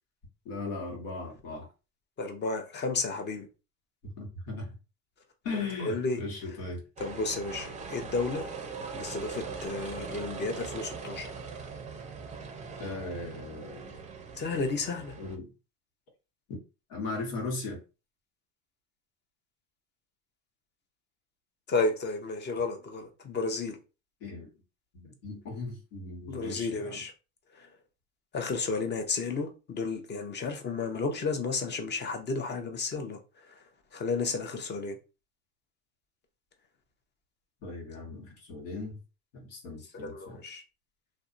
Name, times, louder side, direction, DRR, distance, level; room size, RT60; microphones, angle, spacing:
voice 1, 0.4-1.7 4.2-4.7 5.4-6.8 12.8-14.0 15.2-15.5 16.5-16.6 16.9-17.8 24.2-24.5 24.9-27.0 37.6-39.0 39.3-40.4, left 3 dB, 75° left, 1.3 m, -38 dB
voice 2, 2.2-3.5 5.8-6.2 7.0-8.5 8.9-11.3 14.4-15.2 21.7-23.8 26.3-27.1 27.5-27.7 28.3-33.6 33.9-35.0 39.9-40.6, left 3 dB, 30° left, 0.7 m, -32 dB
sound 1, 7.0-15.4, right 5 dB, 20° right, 0.5 m, -41 dB
2.6 x 2.1 x 2.5 m
hypercardioid pair, 90°, 35 cm